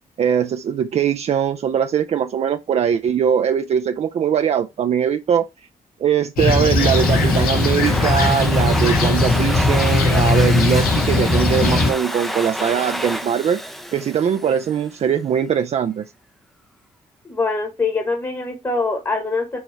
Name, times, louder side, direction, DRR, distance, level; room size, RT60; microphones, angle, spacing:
voice 1, 0.2-5.5 6.0-13.6 13.9-16.1, right 8 dB, 50° right, 0.4 m, -21 dB
Fixed-wing aircraft airplane, 6.4-11.9, left 3 dB, 85° left, 1.6 m, -18 dB
Domestic sounds home sounds, 6.5-14.9, equal, ahead, 0.5 m, -29 dB
voice 2, 17.2-19.6, left 3 dB, 20° left, 1.3 m, -23 dB
6.3 x 3.4 x 4.5 m
cardioid pair, 145°, 15 cm